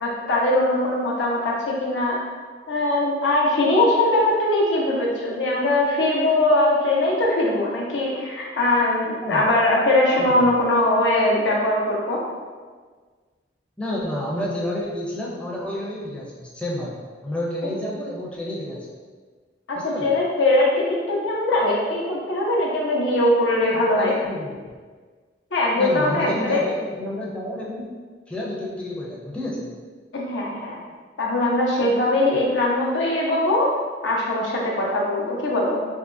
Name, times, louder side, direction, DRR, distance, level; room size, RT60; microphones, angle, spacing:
voice 1, 0.0-2.2 2.7-12.2 19.7-24.1 25.5-26.6 30.1-30.8 31.2-33.7 34.0-35.8, left 1 dB, 85° left, -3 dB, 0.8 m, -21 dB
voice 2, 10.2-10.5 13.8-18.9 19.7-20.1 23.6-24.5 25.8-27.8 28.3-29.7, left 1 dB, 5° left, -5 dB, 0.5 m, -30 dB
3.5 x 2.8 x 2.6 m, 1.5 s
head